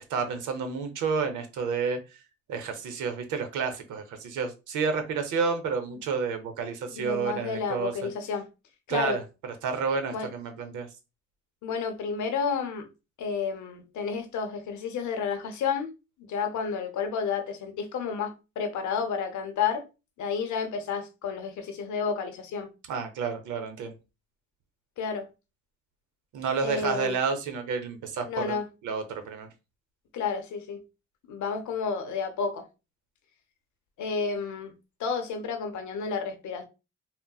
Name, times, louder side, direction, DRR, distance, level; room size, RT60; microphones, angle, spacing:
voice 1, 0.1-2.0 2.5-8.1 8.9-9.2 9.6-10.9 22.9-23.9 26.3-28.6 28.8-29.5, right 5 dB, 80° right, 0.7 m, -30 dB
voice 2, 6.9-8.5 8.9-9.2 10.1-10.3 11.6-12.9 13.2-15.9 16.2-19.9 20.2-22.7 25.0-25.3 26.6-27.2 28.3-28.6 30.1-30.8 31.3-32.7 34.0-34.7 35.0-36.6, left 6 dB, 70° left, 0.7 m, -31 dB
3.8 x 2.0 x 2.3 m
cardioid pair, 90°, 30 cm